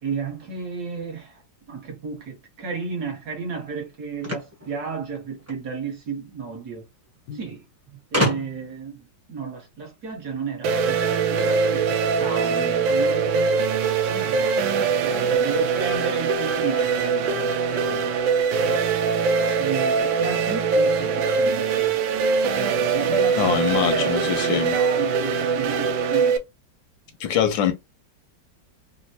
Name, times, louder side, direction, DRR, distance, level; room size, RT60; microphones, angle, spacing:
voice 1, 0.0-1.4 1.7-6.8 7.3-13.6 14.1-18.2 19.6-26.4, right 5 dB, 55° right, 1.7 m, -33 dB
sound 1, 4.2-5.6 6.7-6.8 7.1-7.2 8.1-8.8, equal, 15° right, 0.7 m, -27 dB
sound 2, 10.6-26.4, right 5 dB, 90° right, 1.4 m, -22 dB
voice 2, 23.4-24.8 27.2-27.7, left 9 dB, 90° left, 1.5 m, -23 dB
4.1 x 2.1 x 2.8 m
omnidirectional pair, 2.0 m